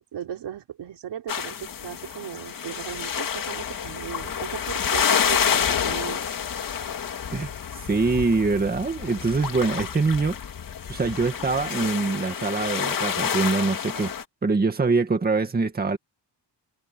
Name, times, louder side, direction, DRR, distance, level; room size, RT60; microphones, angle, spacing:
voice 1, 0.0-6.4, right 10 dB, 75° right, 3.7 m, -37 dB
sound 1, 1.3-14.2, left 8 dB, 50° left, 2.3 m, -28 dB
voice 2, 7.9-10.4 10.9-14.1 14.4-16.0, right 4 dB, 20° right, 2.1 m, -24 dB
wide cardioid pair, 160°, 42 cm